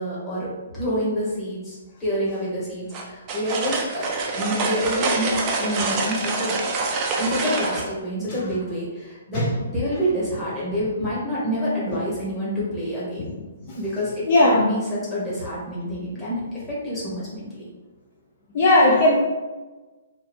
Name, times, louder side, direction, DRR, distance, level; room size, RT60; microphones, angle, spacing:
voice 1, 0.0-4.1 4.3-6.6 7.2-13.2 13.7-16.4 16.7-17.7, equal, 10° left, -9 dB, 1.2 m, -27 dB
sound 1, 2.9-7.9, right 3 dB, 20° right, 0.4 m, -26 dB
voice 2, 14.3-14.6 18.5-19.1, left 1 dB, 35° left, -3 dB, 0.5 m, -16 dB
3.0 x 2.5 x 4.3 m, 1.2 s
hypercardioid pair, 165°, 0 cm